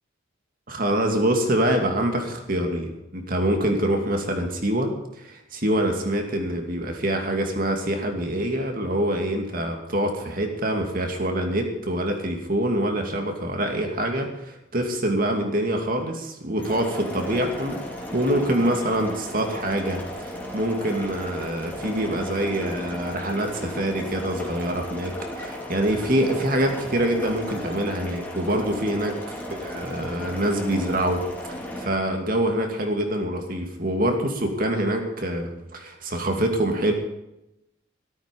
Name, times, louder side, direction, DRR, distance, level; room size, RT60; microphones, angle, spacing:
voice 1, 0.7-4.9 5.2-17.8 18.1-29.2 29.5-31.2 31.5-36.9, right 1 dB, 45° right, 3 dB, 2.5 m, -25 dB
sound 1, 16.6-31.9, left 1 dB, 10° left, 2.8 m, -35 dB
13.5 x 13.5 x 5.4 m, 0.88 s
head